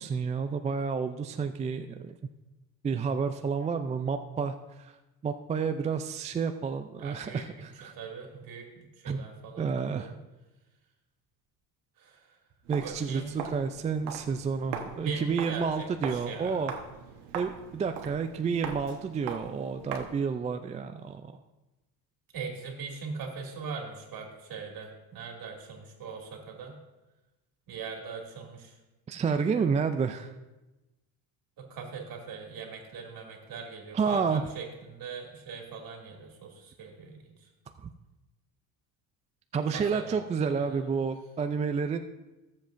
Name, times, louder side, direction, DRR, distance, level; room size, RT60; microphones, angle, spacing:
voice 1, 0.0-2.2 2.8-4.9 5.2-7.9 9.0-9.3 9.6-10.1 12.7-16.7 17.3-21.3 29.1-30.3 33.9-34.4 37.8-37.9 39.5-42.0, right 5 dB, 20° right, 7 dB, 0.3 m, -30 dB
voice 2, 7.0-10.2 12.0-12.4 12.8-13.4 15.0-16.6 22.3-26.8 27.7-28.8 31.6-37.5 39.7-40.2 40.5-40.9, right 5 dB, 50° right, 0 dB, 2.5 m, -41 dB
Walk footsteps, 12.6-20.3, right 7 dB, 70° right, 1.3 m, -41 dB
15.5 x 7.5 x 2.6 m, 1.1 s
supercardioid pair, 100°, 42 cm